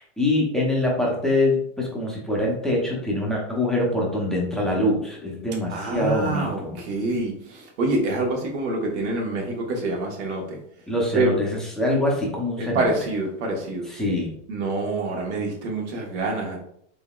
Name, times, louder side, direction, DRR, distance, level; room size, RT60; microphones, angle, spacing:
voice 1, 0.0-6.8 10.9-12.9 13.9-14.3, left 1 dB, ahead, -4 dB, 0.6 m, -24 dB
voice 2, 5.7-10.6 11.1-11.3 12.6-13.9 14.5-16.6, right 2 dB, 70° right, 0 dB, 1.3 m, -26 dB
3.8 x 3.6 x 2.3 m, 0.69 s
supercardioid pair, 155°, 35 cm